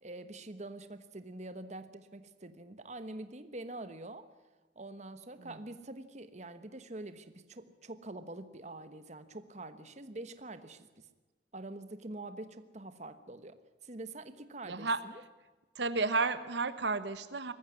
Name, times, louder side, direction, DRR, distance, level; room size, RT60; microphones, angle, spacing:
voice 1, 0.0-4.3 4.7-11.1 11.5-13.6 13.8-14.9, right 2 dB, 40° right, 11 dB, 1.2 m, -45 dB
voice 2, 14.7-15.1 15.7-17.5, right 3 dB, 75° right, 12 dB, 1.1 m, -32 dB
20.5 x 15.0 x 9.7 m, 1.2 s
head